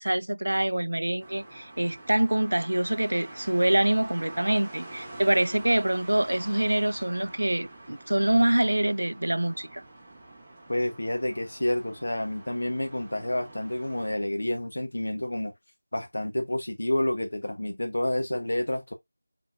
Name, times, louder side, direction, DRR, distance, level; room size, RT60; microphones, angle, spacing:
voice 1, 0.0-9.8, right 1 dB, 80° right, 0.4 m, -25 dB
sound 1, 1.2-14.1, right 1 dB, 10° right, 1.3 m, -46 dB
voice 2, 10.7-15.5 15.9-18.9, left 1 dB, 70° left, 1.1 m, -29 dB
5.1 x 4.1 x 2.5 m
figure-of-eight pair, 175°, 0 cm